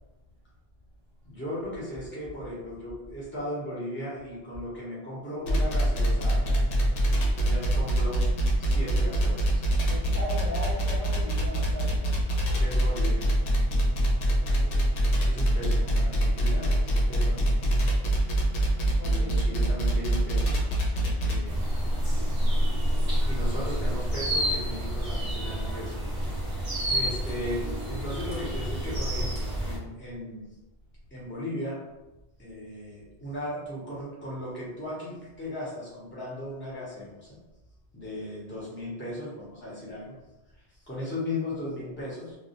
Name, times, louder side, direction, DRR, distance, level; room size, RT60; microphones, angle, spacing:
voice 1, 1.2-6.6 7.4-8.3 8.6-9.6 12.6-13.3 15.3-17.9 19.0-20.6 21.2-21.6 23.2-26.0 26.8-30.6 31.1-31.8 32.4-37.4 37.9-40.1 40.8-42.4, left 1 dB, 15° left, -7 dB, 0.6 m, -37 dB
sound 1, 5.5-21.5, right 1 dB, 90° left, 0.9 m, -24 dB
voice 2, 9.9-12.2 14.4-14.8 19.0-19.6, equal, 55° left, -5 dB, 0.5 m, -38 dB
sound 2, 21.5-29.8, equal, 35° right, 0.3 m, -28 dB
2.3 x 2.0 x 2.7 m, 1.0 s
omnidirectional pair, 1.2 m